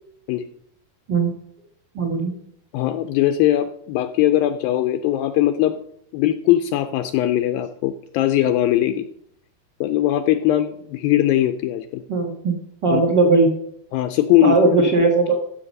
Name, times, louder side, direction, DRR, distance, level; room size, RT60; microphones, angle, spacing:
voice 1, 1.9-2.3 12.1-12.6 12.8-13.5 14.4-15.4, right 3 dB, 70° right, 2 dB, 1.0 m, -18 dB
voice 2, 2.7-5.8 6.1-9.1 9.8-12.0 12.9-13.0 13.9-14.6, left 13 dB, 85° left, 8 dB, 2.1 m, -20 dB
14.5 x 7.1 x 5.3 m, 0.69 s
omnidirectional pair, 4.7 m